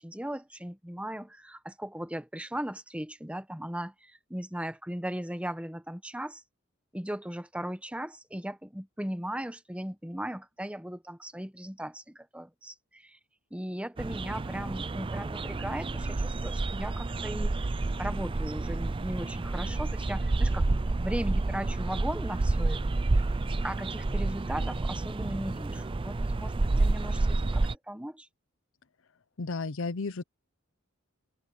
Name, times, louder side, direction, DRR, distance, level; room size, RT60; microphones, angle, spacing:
voice 1, 0.0-6.4 6.9-13.2 13.5-17.6 18.0-20.7 21.0-22.8 23.6-28.3, right 1 dB, 5° right, 1.4 m, -37 dB
sound 1, 14.0-27.7, right 2 dB, 25° right, 0.5 m, -29 dB
voice 2, 29.4-30.2, left 3 dB, 70° left, 0.7 m, -33 dB
head